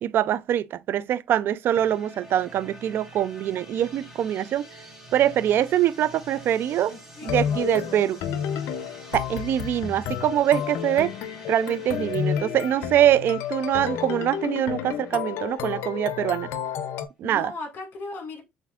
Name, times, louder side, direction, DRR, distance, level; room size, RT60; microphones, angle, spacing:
voice 1, 0.0-4.7 5.1-6.9 7.2-8.2 9.1-11.1 11.5-16.5 17.2-17.5, right 11 dB, 55° right, 0.3 m, -24 dB
sound 1, 1.7-15.5, equal, 5° right, 2.0 m, -47 dB
voice 2, 6.9-8.0 17.2-18.4, left 3 dB, 50° left, 2.0 m, -38 dB
sound 2, 7.2-17.1, left 9 dB, 70° left, 0.6 m, -31 dB
6.6 x 2.7 x 2.4 m
cardioid pair, 105°, 4 cm